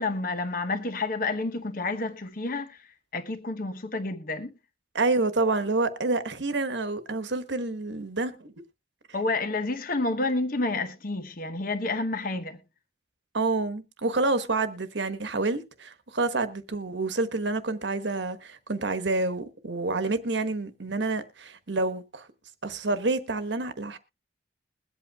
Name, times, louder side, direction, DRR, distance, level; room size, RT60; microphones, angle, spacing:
voice 1, 0.0-4.5 9.1-12.6, left 3 dB, 50° left, 1.0 m, -30 dB
voice 2, 4.9-8.5 13.3-22.3 22.6-24.0, right 3 dB, 70° right, 1.2 m, -28 dB
21.5 x 8.2 x 2.3 m
head